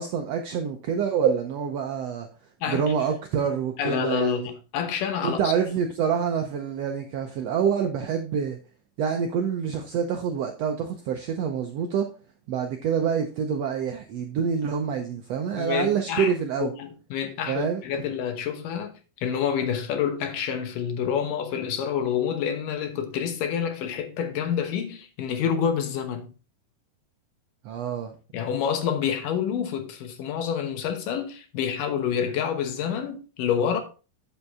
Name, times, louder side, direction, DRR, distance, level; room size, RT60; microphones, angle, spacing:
voice 1, 0.0-2.3 2.7-4.5 5.2-8.6 9.0-12.1 12.5-16.7 17.5-17.8 27.6-28.2, right 7 dB, 75° right, 1.5 m, -26 dB
voice 2, 3.8-5.5 15.5-16.3 16.6-18.9 19.2-26.3 28.3-33.8, left 8 dB, 75° left, 2.7 m, -28 dB
8.0 x 7.0 x 3.6 m
omnidirectional pair, 3.9 m